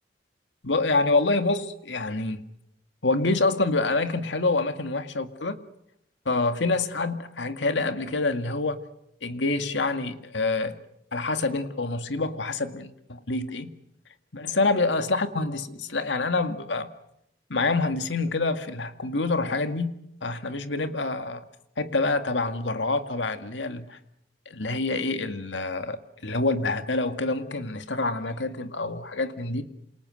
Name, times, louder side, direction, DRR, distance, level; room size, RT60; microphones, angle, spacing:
voice 1, 0.6-2.5 3.0-5.6 6.3-8.8 9.2-10.8 11.1-13.7 14.3-16.9 17.5-21.4 21.8-24.0 24.5-29.6, left 3 dB, 85° left, 2.1 m, -27 dB
28.5 x 27.5 x 6.5 m
head